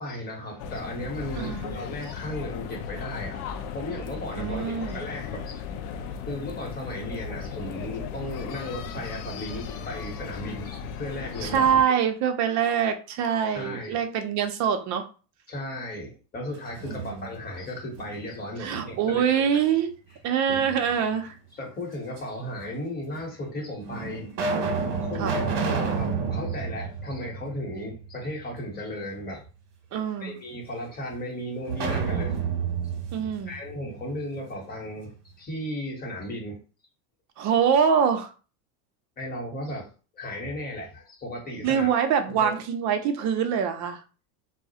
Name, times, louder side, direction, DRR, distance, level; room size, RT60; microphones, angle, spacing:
voice 1, 0.0-3.4 3.7-4.6 4.9-5.6 6.3-11.7 13.5-14.0 15.5-19.6 21.5-24.3 24.6-29.4 30.2-32.4 33.5-36.6 39.2-41.9 42.3-42.5, left 1 dB, 20° left, 0.9 m, -35 dB
sound 1, 0.6-11.8, left 6 dB, 70° left, 0.5 m, -36 dB
voice 2, 1.3-1.8 4.3-5.0 11.4-15.1 16.9-17.3 18.6-20.0 20.2-21.3 25.2-25.4 29.9-30.4 33.1-33.5 37.4-38.3 41.6-44.0, right 7 dB, 40° right, 0.5 m, -24 dB
sound 2, 16.5-17.5 18.0-19.2 20.5-21.3 22.2-22.3 23.1-23.2 23.8-27.9 28.3-28.4 31.7-34.5, right 5 dB, 55° right, 0.9 m, -30 dB
2.2 x 2.0 x 2.7 m
supercardioid pair, 110°, 48 cm